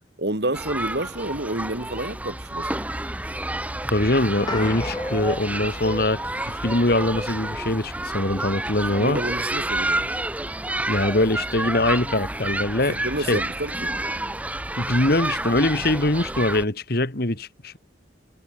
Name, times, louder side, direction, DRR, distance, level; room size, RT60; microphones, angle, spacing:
voice 1, 0.2-2.9 8.9-10.1 12.9-13.9, right 1 dB, 55° right, 3.1 m, -29 dB
sound 1, 0.5-16.6, right 1 dB, 5° right, 1.4 m, -29 dB
voice 2, 3.9-9.2 10.9-13.0 13.3-13.4 14.8-17.8, left 1 dB, 50° left, 2.0 m, -23 dB
sound 2, 4.5-7.0, left 2 dB, 20° left, 1.7 m, -36 dB
head